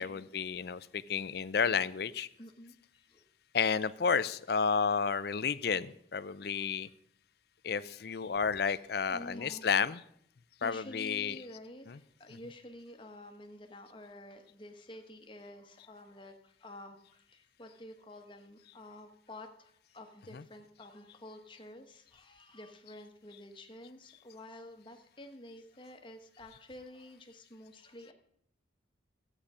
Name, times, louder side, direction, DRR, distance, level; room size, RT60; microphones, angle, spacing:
voice 1, 0.0-2.3 3.5-6.9 7.6-10.0 10.6-11.4 11.9-12.0 12.3-12.4 20.3-20.4, left 6 dB, 55° left, 16 dB, 0.4 m, -31 dB
voice 2, 2.4-3.3 6.5-6.7 9.1-9.7 10.6-28.1, left 1 dB, 25° left, 5 dB, 1.1 m, -50 dB
14.0 x 8.7 x 4.9 m, 0.70 s
head